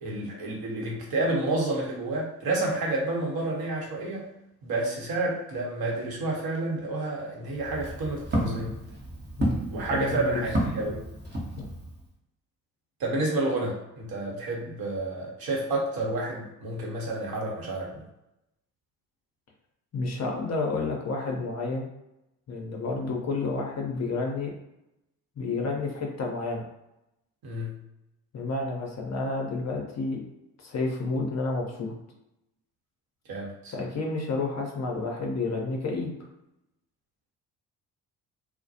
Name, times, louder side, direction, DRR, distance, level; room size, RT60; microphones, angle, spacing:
voice 1, 0.0-4.3 4.6-8.8 9.7-11.0 13.0-18.0 27.4-27.8 33.3-33.7, right 2 dB, 50° right, -2 dB, 0.9 m, -30 dB
Walk footsteps, 7.5-12.0, right 1 dB, 20° right, 0.8 m, -32 dB
voice 2, 9.9-10.4 11.6-11.7 19.9-21.9 22.5-24.5 25.4-26.6 28.3-30.2 30.6-31.9 33.7-36.1, left 3 dB, 35° left, 0 dB, 0.7 m, -30 dB
2.2 x 2.1 x 2.7 m, 0.88 s
hypercardioid pair, 45°, 48 cm